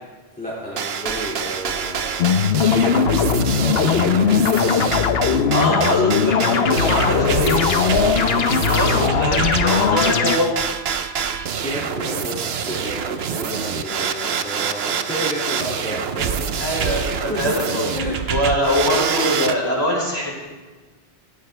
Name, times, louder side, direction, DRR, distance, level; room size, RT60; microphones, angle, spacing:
voice 1, 0.4-2.1 2.7-4.8 5.4-5.7 6.7-7.3 7.9-8.2 11.6-18.2, equal, 5° left, -7 dB, 2.4 m, -31 dB
sound 1, 0.8-19.6, right 7 dB, 65° right, 0.9 m, -26 dB
sound 2, 2.2-10.4, left 6 dB, 65° left, 1.0 m, -19 dB
voice 2, 5.5-7.6 8.6-10.5 16.6-17.9 18.3-20.3, equal, 20° right, -5 dB, 6.2 m, -22 dB
17.5 x 16.5 x 3.3 m, 1.3 s
omnidirectional pair, 1.2 m